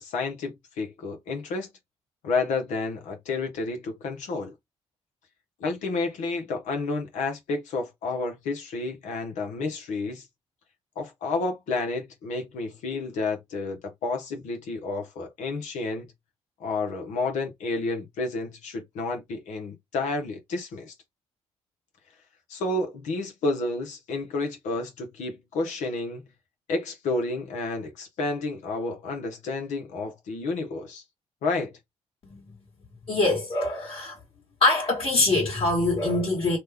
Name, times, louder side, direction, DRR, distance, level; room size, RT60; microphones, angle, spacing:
voice 1, 0.0-1.7 2.2-4.5 5.6-10.3 11.0-16.1 16.6-20.9 22.5-26.3 26.7-31.0 31.4-31.7, left 3 dB, 85° left, 0.9 m, -30 dB
voice 2, 33.1-34.2 34.6-36.6, left 2 dB, 50° left, 1.5 m, -23 dB
3.0 x 2.2 x 3.4 m
cardioid pair, 85°, 12 cm